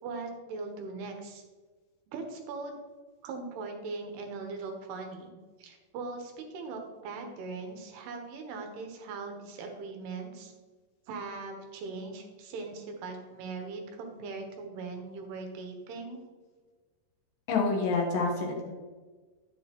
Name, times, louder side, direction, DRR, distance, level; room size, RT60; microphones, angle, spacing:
voice 1, 0.0-1.4 2.1-2.8 3.2-5.3 5.6-10.5 11.1-16.2, right 4 dB, 85° right, 3 dB, 3.2 m, -40 dB
voice 2, 17.5-18.7, left 4 dB, 70° left, 0 dB, 2.5 m, -28 dB
10.0 x 7.3 x 3.0 m, 1.4 s
omnidirectional pair, 4.6 m